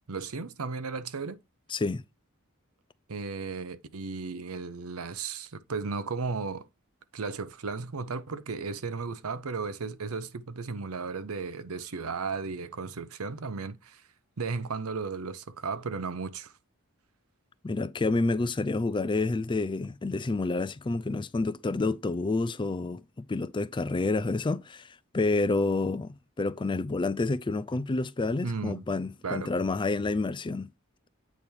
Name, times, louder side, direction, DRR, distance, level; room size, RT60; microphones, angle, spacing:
voice 1, 0.1-1.4 3.1-6.7 7.1-14.0 14.4-16.5 28.4-28.8 29.2-29.5, right 4 dB, 75° right, 0.7 m, -35 dB
voice 2, 1.7-2.0 17.6-24.9 25.1-30.7, left 3 dB, 20° left, 0.4 m, -29 dB
8.3 x 3.5 x 4.4 m
head